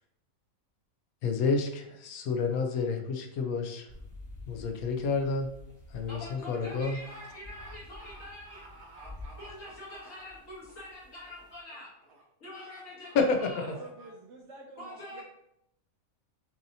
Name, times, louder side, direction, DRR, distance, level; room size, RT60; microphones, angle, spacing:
voice 1, 1.2-3.9 4.5-5.5 5.9-7.0 13.1-13.5, left 4 dB, 85° left, 4 dB, 1.1 m, -29 dB
sound 1, 3.9-11.6, left 2 dB, 25° left, 1.2 m, -50 dB
sound 2, 4.6-4.9 5.2-10.7 11.1-11.4 11.7-12.2 12.5-12.6 13.0-13.2 13.6-14.1, right 2 dB, 45° right, 1.1 m, -53 dB
voice 2, 6.1-8.8 9.4-11.9 12.4-13.7 14.8-15.2, left 1 dB, 65° left, -7 dB, 1.7 m, -45 dB
voice 3, 13.7-15.2, right 3 dB, 65° right, -1 dB, 0.9 m, -47 dB
7.1 x 2.7 x 2.8 m, 0.77 s
omnidirectional pair, 1.5 m